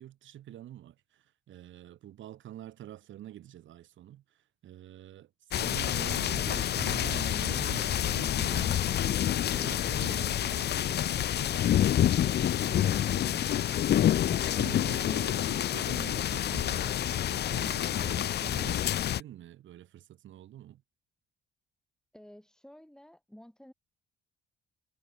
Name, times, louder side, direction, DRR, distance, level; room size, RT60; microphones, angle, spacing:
voice 1, 0.0-18.9 19.2-20.8, right 12 dB, 75° right, 2.3 m, -46 dB
sound 1, 5.5-19.2, left 11 dB, 55° left, 0.6 m, -28 dB
voice 2, 22.1-23.7, equal, 5° left, 7.7 m, -52 dB
cardioid pair, 90°, 20 cm